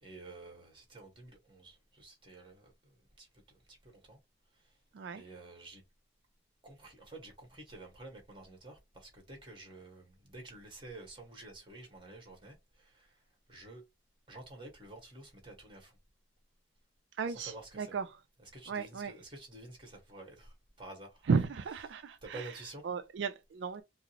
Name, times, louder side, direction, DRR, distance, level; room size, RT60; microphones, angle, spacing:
voice 1, 0.0-4.2 4.5-4.8 5.1-5.8 6.6-13.8 14.3-16.0 17.3-18.0 18.4-22.9, right 2 dB, 25° right, 1.5 m, -51 dB
voice 2, 17.2-18.0 18.7-19.1 21.3-22.4 22.8-23.8, right 5 dB, 75° right, 0.4 m, -34 dB
4.9 x 2.0 x 2.9 m
head